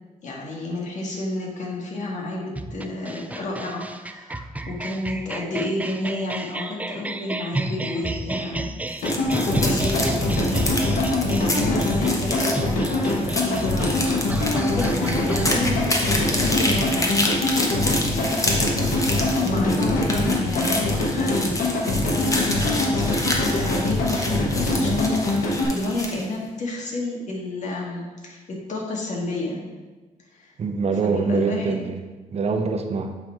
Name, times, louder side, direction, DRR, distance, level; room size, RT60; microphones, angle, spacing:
voice 1, 0.2-8.7 9.1-10.6 11.2-17.2 17.8-18.8 19.1-21.5 21.8-29.7 30.3-30.5 31.0-31.8, left 2 dB, 60° left, -1 dB, 1.8 m, -30 dB
sound 1, 2.6-15.5, right 2 dB, 10° right, 0.4 m, -32 dB
sound 2, 8.9-26.3, left 1 dB, 25° left, 1.3 m, -28 dB
sound 3, 9.0-25.7, left 2 dB, 75° left, 1.3 m, -23 dB
voice 2, 30.6-32.0 32.3-33.2, right 4 dB, 50° right, 6 dB, 0.7 m, -24 dB
8.1 x 3.6 x 4.4 m, 1.3 s
cardioid pair, 75°, 14 cm